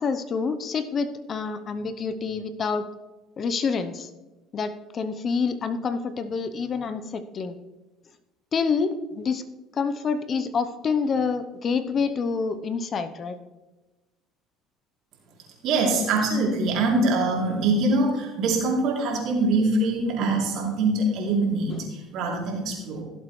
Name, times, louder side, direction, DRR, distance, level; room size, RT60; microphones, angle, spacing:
voice 1, 0.0-2.9 3.4-4.1 4.5-7.6 8.5-9.4 9.7-13.4 21.7-21.8, left 5 dB, 40° left, 11 dB, 0.8 m, -27 dB
voice 2, 15.6-23.0, right 2 dB, 65° right, -1 dB, 3.1 m, -24 dB
16.0 x 7.6 x 3.2 m, 1.1 s
supercardioid pair, 90°, 0 cm